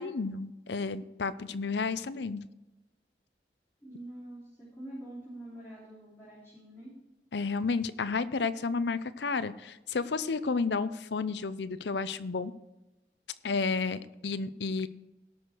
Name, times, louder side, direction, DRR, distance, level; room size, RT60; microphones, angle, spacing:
voice 1, 0.0-2.4 7.3-12.5 13.4-14.9, left 4 dB, 75° left, 14 dB, 0.6 m, -31 dB
voice 2, 3.8-6.9, right 1 dB, 15° left, -9 dB, 3.6 m, -45 dB
17.5 x 6.5 x 4.6 m, 1.0 s
head